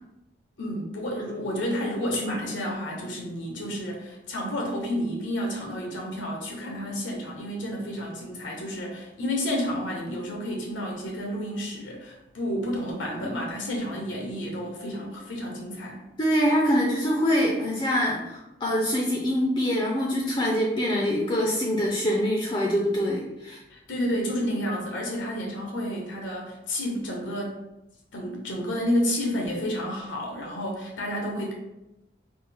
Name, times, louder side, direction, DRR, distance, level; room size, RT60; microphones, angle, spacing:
voice 1, 0.6-16.0 23.7-27.6 28.1-31.5, equal, 90° left, -1 dB, 0.8 m, -30 dB
voice 2, 16.2-23.6, equal, 25° left, -2 dB, 0.4 m, -24 dB
4.0 x 2.0 x 3.4 m, 0.95 s
head